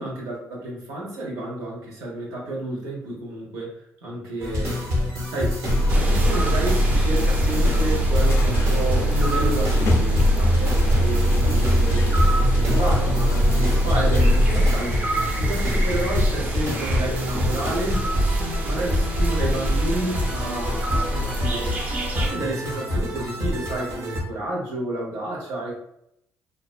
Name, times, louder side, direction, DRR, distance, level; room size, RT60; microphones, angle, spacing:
voice 1, 0.0-4.8 5.3-5.6 5.9-14.9 15.4-21.7 22.1-25.8, right 1 dB, 85° right, -3 dB, 0.9 m, -30 dB
sound 1, 4.4-24.2, equal, 60° right, 0.8 m, -26 dB
sound 2, 5.7-14.8, equal, 60° left, 0.4 m, -21 dB
sound 3, 5.9-22.3, equal, 30° right, 0.5 m, -27 dB
2.4 x 2.1 x 2.4 m, 0.75 s
cardioid pair, 105°, 5 cm